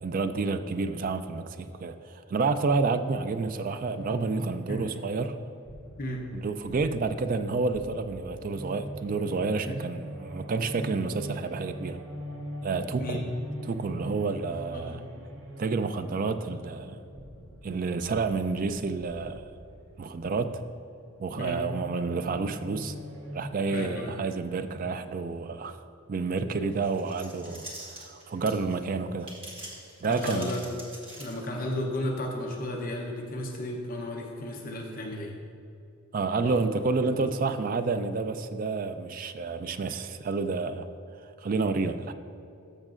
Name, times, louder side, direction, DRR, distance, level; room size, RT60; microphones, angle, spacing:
voice 1, 0.0-5.4 6.3-12.0 12.6-13.2 13.7-15.0 15.6-17.0 17.6-19.4 20.0-20.6 21.2-22.9 23.3-25.8 26.1-27.6 28.0-29.3 30.0-30.6 36.1-40.9 41.4-42.1, right 4 dB, 40° right, 10 dB, 0.3 m, -29 dB
sound 1, 3.9-23.5, equal, 65° right, 1.0 m, -43 dB
voice 2, 23.7-24.1 30.0-30.6 31.2-35.3 36.4-36.6 37.2-37.3, left 1 dB, 40° left, 0 dB, 0.8 m, -34 dB
sound 2, 26.8-28.7 29.2-31.6, right 1 dB, 25° right, 1.5 m, -43 dB
13.5 x 6.4 x 2.5 m, 2.7 s
head